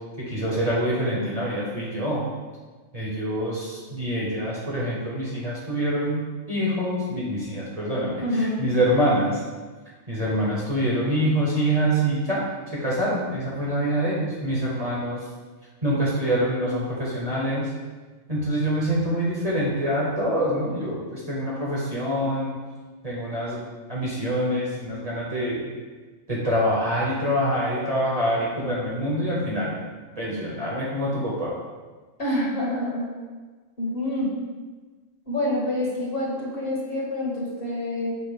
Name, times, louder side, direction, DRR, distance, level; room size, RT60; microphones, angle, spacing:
voice 1, 0.2-2.2 2.9-6.2 6.5-9.4 10.1-15.3 15.8-17.7 18.3-22.5 23.0-23.6 23.9-25.7 26.3-29.7 30.2-31.5, equal, 30° right, -6 dB, 1.2 m, -25 dB
voice 2, 8.2-8.7 32.2-33.1 33.8-34.3 35.3-38.1, left 1 dB, 45° left, -5 dB, 1.7 m, -27 dB
6.9 x 2.8 x 5.2 m, 1.3 s
omnidirectional pair, 1.4 m